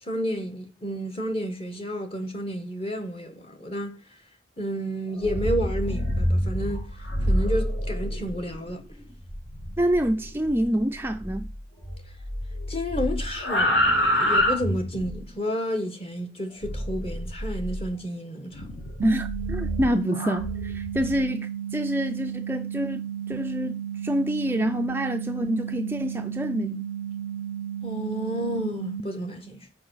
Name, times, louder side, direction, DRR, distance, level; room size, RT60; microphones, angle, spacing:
voice 1, 0.0-4.0 4.6-8.8 12.7-18.7 27.8-29.7, equal, 30° left, 1.4 m, -31 dB
sound 1, 5.1-11.6 11.8-15.2 16.6-17.9 18.5-21.2, equal, 65° left, 2.5 m, -28 dB
voice 2, 9.8-11.5 19.0-26.9, equal, 10° right, 0.3 m, -27 dB
sound 2, 19.0-29.0, right 9 dB, 85° right, 0.5 m, -33 dB
5.8 x 4.7 x 6.3 m
head